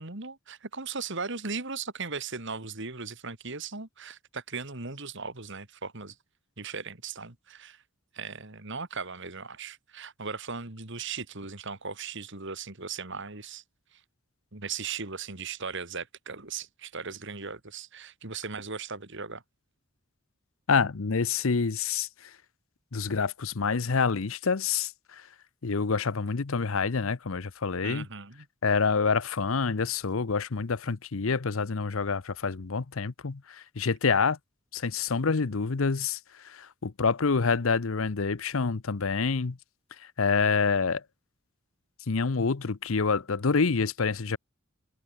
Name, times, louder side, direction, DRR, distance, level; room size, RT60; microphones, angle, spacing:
voice 1, 0.0-6.2 6.6-7.8 8.1-13.6 13.9-14.0 14.5-19.4 27.8-28.5, right 5 dB, 55° right, 2.7 m, -38 dB
voice 2, 20.7-22.1 22.9-25.2 25.6-28.1 28.6-34.4 34.7-36.2 36.4-39.6 40.2-41.0 42.1-44.4, left 5 dB, 70° left, 0.7 m, -27 dB
head